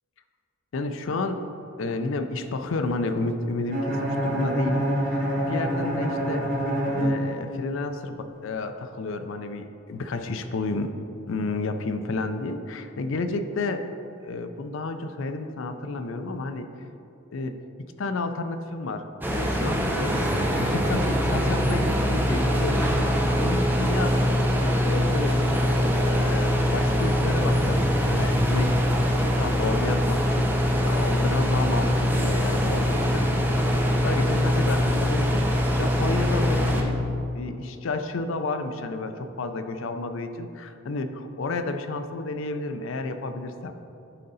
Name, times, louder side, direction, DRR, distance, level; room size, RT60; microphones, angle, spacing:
voice 1, 0.7-1.4 1.8-6.4 6.9-10.9 11.3-13.8 14.2-16.7 17.3-17.5 18.0-24.2 24.8-25.4 25.9-28.8 29.2-30.5 30.8-33.7 34.0-37.0 37.3-43.7, left 3 dB, 70° left, 8 dB, 0.5 m, -31 dB
Bowed string instrument, 3.7-7.8, equal, 40° right, 1.5 m, -26 dB
sound 1, 19.2-36.8, equal, 10° right, 0.5 m, -23 dB
11.0 x 3.8 x 4.0 m, 2.7 s
head